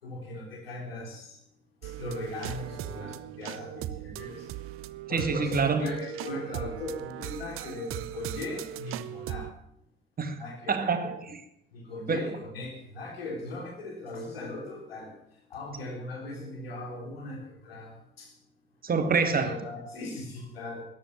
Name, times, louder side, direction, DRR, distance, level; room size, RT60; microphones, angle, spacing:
voice 1, 0.0-1.4 1.8-4.5 5.1-9.5 10.4-10.9 11.7-15.1 15.5-18.3 19.3-20.8, left 2 dB, 75° left, 2 dB, 3.4 m, -39 dB
sound 1, 1.8-9.5, right 13 dB, 45° right, 0.7 m, -38 dB
voice 2, 5.1-5.9 10.2-10.4 10.7-11.4 12.1-12.2 18.8-19.5, right 5 dB, 30° right, 8 dB, 2.0 m, -26 dB
13.5 x 10.5 x 7.1 m, 0.73 s
figure-of-eight pair, 55°, 30 cm